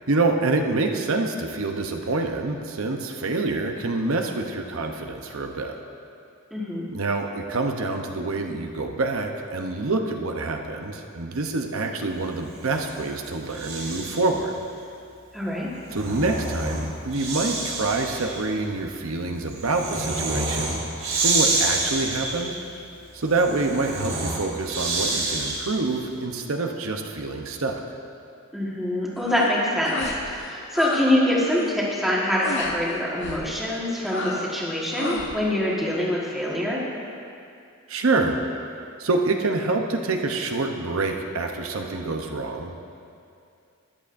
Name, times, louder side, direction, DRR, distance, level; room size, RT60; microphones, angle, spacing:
voice 1, 0.1-5.8 6.9-14.5 15.9-20.8 21.2-22.6 23.1-27.8 37.9-38.4 39.0-42.8, right 3 dB, 70° right, 3 dB, 0.8 m, -26 dB
voice 2, 6.5-6.9 15.3-15.7 28.5-36.8, left 1 dB, ahead, -6 dB, 1.5 m, -25 dB
Breathing, 12.4-14.4 15.6-25.9, right 2 dB, 45° right, 2.7 m, -29 dB
sound 1, 29.2-29.5 29.8-30.2 30.5-31.1 31.4-31.7 32.4-32.8 33.2-33.5 34.1-34.6 34.9-35.3, left 3 dB, 55° left, 0.9 m, -32 dB
13.5 x 11.0 x 2.6 m, 2.5 s
head